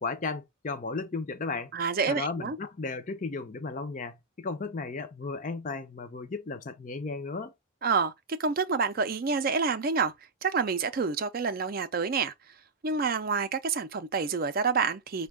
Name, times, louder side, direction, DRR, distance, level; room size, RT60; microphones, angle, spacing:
voice 1, 0.0-1.7 2.1-7.5, left 3 dB, 35° left, 0.5 m, -35 dB
voice 2, 1.7-2.6 7.8-8.1 8.4-10.1 10.4-12.3 12.8-15.3, right 5 dB, 45° right, 0.4 m, -28 dB
5.2 x 2.2 x 3.5 m
head